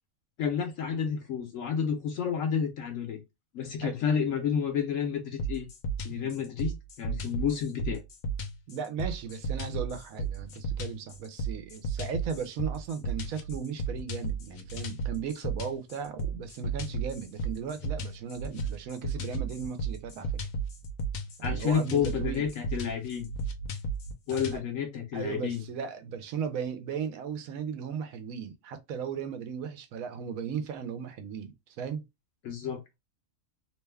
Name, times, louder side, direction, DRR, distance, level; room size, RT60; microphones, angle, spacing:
voice 1, 0.4-3.2 3.5-5.7 6.0-8.0 21.4-23.3 24.3-25.6 32.4-32.8, left 7 dB, 75° left, 1.1 m, -30 dB
sound 1, 5.4-24.6, right 3 dB, 90° left, 1.1 m, -34 dB
voice 2, 8.7-20.4 21.4-22.4 24.5-24.6 25.1-32.0, right 7 dB, 90° right, 1.1 m, -36 dB
2.9 x 2.2 x 3.3 m
omnidirectional pair, 1.4 m